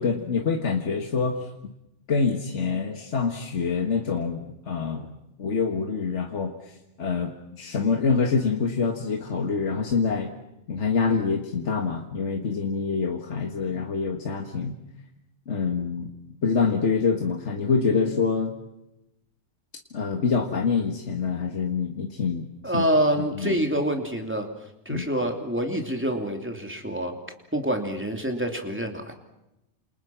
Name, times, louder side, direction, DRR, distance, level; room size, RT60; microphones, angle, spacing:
voice 1, 0.0-1.5 2.1-5.1 5.4-10.3 10.7-14.8 15.5-16.1 16.4-18.6 19.9-22.5 22.7-22.9 23.4-23.6 24.9-25.1, left 5 dB, 70° left, 3 dB, 2.0 m, -26 dB
voice 2, 22.6-24.5 24.8-27.1 27.5-29.1, right 1 dB, 10° right, 4 dB, 3.1 m, -26 dB
28.5 x 28.0 x 6.0 m, 0.89 s
omnidirectional pair, 1.2 m